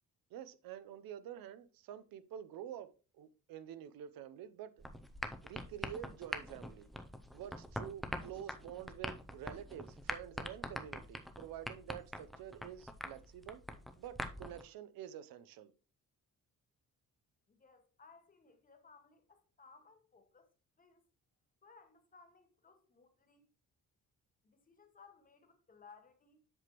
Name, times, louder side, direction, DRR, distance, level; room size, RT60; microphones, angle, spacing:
voice 1, 0.3-4.7 5.4-6.9 7.3-13.6 14.0-15.7, right 10 dB, 85° right, 0.7 m, -48 dB
sound 1, 4.8-14.6, equal, ahead, 0.4 m, -44 dB
voice 2, 17.5-20.5 20.8-21.0 21.6-23.4 24.4-26.4, left 4 dB, 25° left, 1.0 m, -62 dB
7.8 x 6.0 x 3.0 m
cardioid pair, 155°, 34 cm